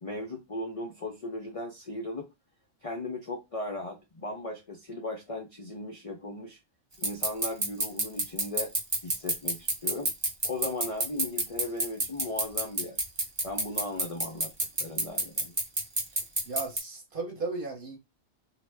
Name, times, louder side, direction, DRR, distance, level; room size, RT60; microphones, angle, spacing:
voice 1, 0.0-2.3 2.8-6.6 7.0-8.7 9.0-10.1 10.4-13.0 13.4-14.5 14.8-15.5, left 2 dB, 55° left, 0.4 m, -37 dB
sound 1, 7.0-16.8, right 2 dB, 25° right, 0.6 m, -26 dB
voice 2, 16.5-18.0, right 3 dB, 50° right, 0.9 m, -35 dB
2.4 x 2.1 x 3.3 m
omnidirectional pair, 1.3 m